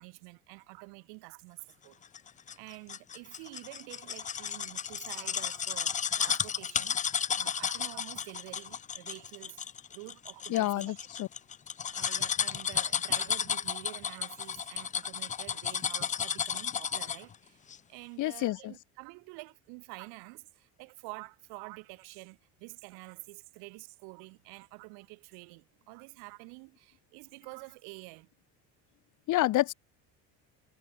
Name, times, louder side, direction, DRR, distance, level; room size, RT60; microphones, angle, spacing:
voice 1, 0.0-2.0 2.6-9.6 9.9-11.1 11.9-28.3, right 34 dB, 80° right, 7.3 m, -48 dB
sound 1, 2.1-17.3 17.7-17.8, left 7 dB, 20° left, 0.6 m, -33 dB
voice 2, 10.5-11.3 18.2-18.7 29.3-29.7, left 16 dB, 55° left, 1.7 m, -28 dB
cardioid pair, 135°, 37 cm